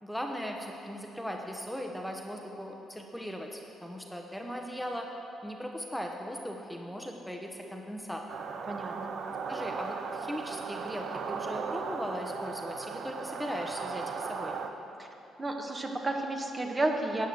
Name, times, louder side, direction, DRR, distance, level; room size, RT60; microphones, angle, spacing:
voice 1, 0.0-5.1 5.4-8.2 9.5-14.6, equal, ahead, 1 dB, 1.1 m, -38 dB
sound 1, 8.3-14.7, right 5 dB, 60° right, 0.7 m, -37 dB
voice 2, 8.7-9.1 15.0-15.1 15.4-17.3, right 2 dB, 30° right, 2 dB, 1.5 m, -32 dB
12.0 x 8.2 x 6.2 m, 3.0 s
hypercardioid pair, 45°, 0 cm